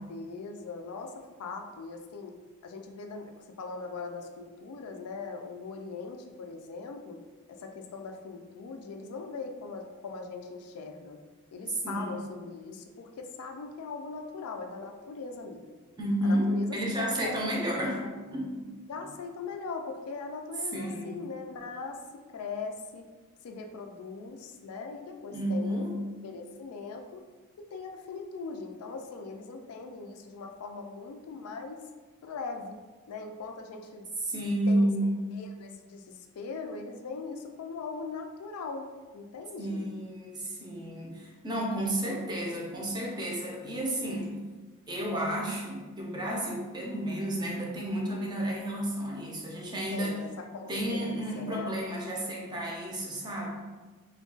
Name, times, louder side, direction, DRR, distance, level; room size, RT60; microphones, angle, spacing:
voice 1, 0.1-2.4 2.6-7.2 7.5-11.2 11.5-15.6 16.2-17.4 18.0-18.1 18.9-23.1 23.4-27.2 27.6-31.8 32.2-32.8 33.1-34.0 34.7-34.9 35.3-38.9 39.1-39.9 49.9-51.8, left 4 dB, 80° left, 5 dB, 0.4 m, -40 dB
voice 2, 11.8-12.2 16.0-18.0 18.3-18.7 20.7-21.3 25.3-25.9 34.2-35.3 39.6-44.3 44.9-50.2 50.7-53.5, right 1 dB, 20° right, -2 dB, 0.5 m, -31 dB
2.3 x 2.2 x 3.7 m, 1.3 s
head